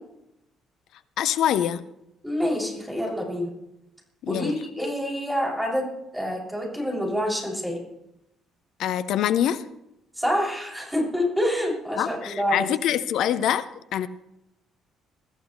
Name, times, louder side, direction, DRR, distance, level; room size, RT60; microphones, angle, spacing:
voice 1, 1.2-1.8 4.2-4.6 8.8-9.6 12.0-13.7 13.9-14.1, left 10 dB, 60° left, 14 dB, 0.8 m, -24 dB
voice 2, 2.2-3.5 4.3-7.8 10.2-12.7, equal, 5° right, -2 dB, 7.0 m, -27 dB
23.5 x 14.0 x 3.3 m, 0.87 s
figure-of-eight pair, 45°, 0 cm